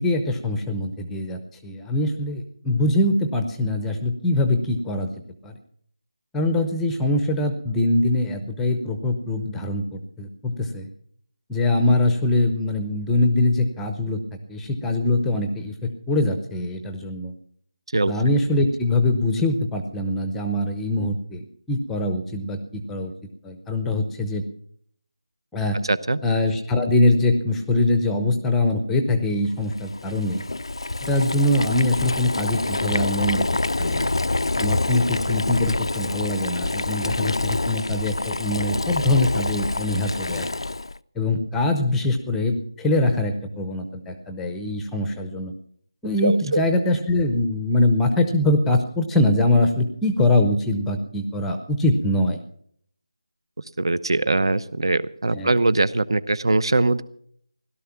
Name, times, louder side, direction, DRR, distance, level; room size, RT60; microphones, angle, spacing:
voice 1, 0.0-5.1 5.4-5.5 6.3-10.9 11.5-14.2 14.5-17.3 18.1-23.1 23.4-24.4 25.5-25.8 26.2-30.4 31.0-33.5 33.8-34.1 34.6-40.5 41.2-45.5 46.0-52.4 55.3-55.5, left 2 dB, 5° left, 7 dB, 0.7 m, -23 dB
voice 2, 25.9-26.2 46.2-46.6 53.8-57.0, right 2 dB, 65° right, 16 dB, 0.9 m, -21 dB
Boiling, 29.7-41.0, left 2 dB, 85° left, 0.6 m, -26 dB
17.0 x 12.0 x 5.8 m, 0.64 s
figure-of-eight pair, 170°, 3 cm